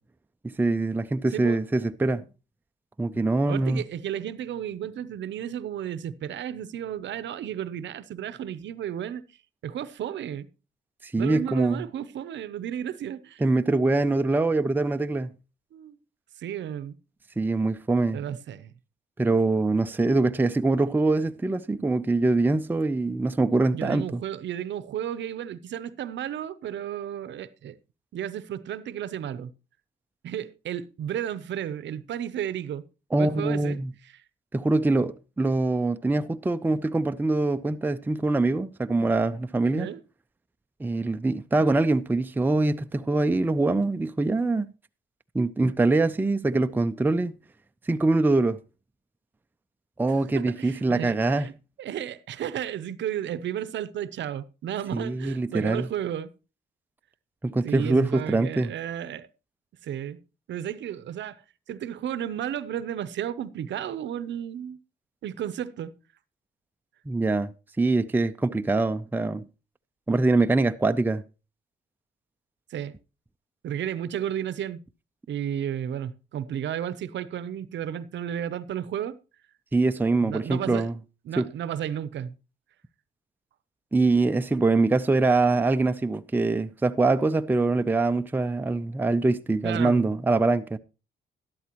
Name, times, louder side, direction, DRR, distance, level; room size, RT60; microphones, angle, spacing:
voice 1, 0.4-2.2 3.0-3.8 11.0-11.8 13.4-15.3 17.4-18.2 19.2-24.2 33.1-33.9 34.5-39.9 40.8-44.7 45.3-47.3 47.9-48.6 50.0-51.5 54.9-55.9 57.4-58.7 67.1-69.4 70.1-71.2 79.7-80.9 81.4-81.5 83.9-90.8, right 3 dB, 10° right, 0.5 m, -24 dB
voice 2, 1.3-1.6 3.5-9.2 9.6-10.5 11.2-13.4 15.7-16.0 16.4-17.0 18.1-18.7 23.7-27.8 28.1-29.5 30.2-32.8 33.2-33.8 34.0-34.1 39.7-40.0 50.3-51.5 51.8-56.3 57.6-59.3 59.8-60.2 60.5-61.4 61.7-64.8 65.2-65.9 72.7-72.9 73.6-74.8 75.3-79.2 80.2-80.9 81.2-82.4 89.6-90.1, right 10 dB, 65° right, 0.7 m, -33 dB
12.5 x 11.5 x 3.0 m
cardioid pair, 90°, 20 cm